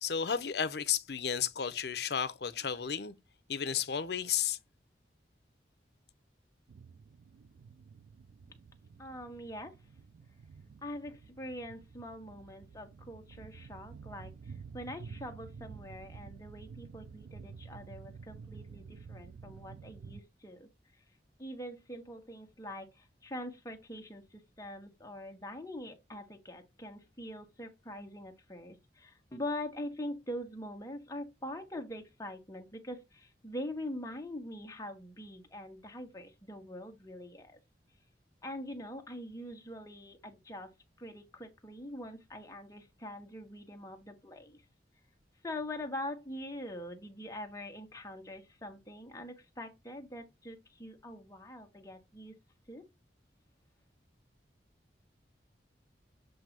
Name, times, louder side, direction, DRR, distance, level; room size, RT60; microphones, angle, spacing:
voice 1, 0.0-3.1 3.5-4.6, left 8 dB, 70° left, 0.7 m, -33 dB
sound 1, 6.7-20.2, right 5 dB, 80° right, 0.3 m, -50 dB
voice 2, 9.0-9.7 10.8-20.7 21.4-37.6 38.4-40.7 41.0-44.6 45.4-52.4 52.7-52.9, left 1 dB, 20° left, 1.2 m, -43 dB
7.6 x 2.7 x 5.9 m
head